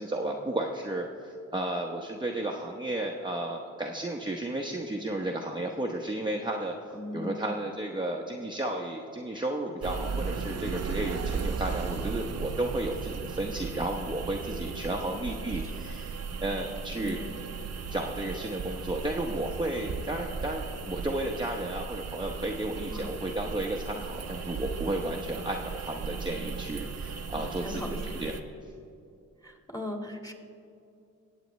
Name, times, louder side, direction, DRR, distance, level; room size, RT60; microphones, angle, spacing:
voice 1, 0.0-6.7 7.1-17.2 17.9-28.3, right 1 dB, 15° right, 0 dB, 0.9 m, -33 dB
voice 2, 6.9-7.6 14.9-15.8 17.0-17.3 22.9-23.1 27.3-28.0 29.4-30.3, left 2 dB, 10° left, 2 dB, 2.0 m, -40 dB
sound 1, 9.8-28.4, right 5 dB, 55° right, 0.8 m, -36 dB
20.0 x 8.2 x 3.2 m, 2.5 s
supercardioid pair, 55°, 31 cm